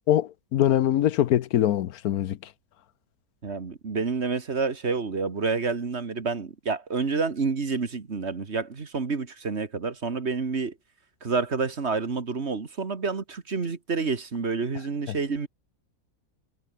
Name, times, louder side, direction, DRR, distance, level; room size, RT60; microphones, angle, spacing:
voice 1, 0.1-2.4, left 12 dB, 80° left, 1.2 m, -23 dB
voice 2, 3.4-10.7 11.2-15.5, right 4 dB, 45° right, 2.0 m, -28 dB
omnidirectional pair, 1.6 m